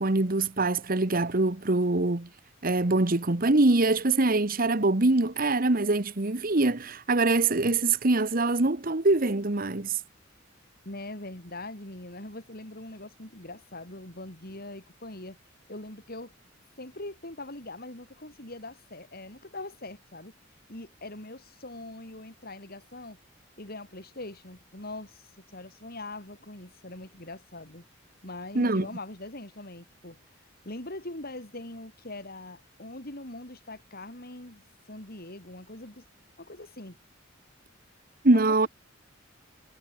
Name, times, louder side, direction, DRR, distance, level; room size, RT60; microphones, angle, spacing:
voice 1, 0.0-2.3 2.6-10.0 28.5-28.9 38.2-38.7, right 2 dB, 45° right, 1.3 m, -24 dB
voice 2, 10.8-15.4 15.7-16.3 16.8-20.3 20.7-23.2 23.6-27.8 28.2-30.2 30.6-36.0 36.4-37.0 38.3-38.7, left 2 dB, 50° left, 4.8 m, -42 dB
head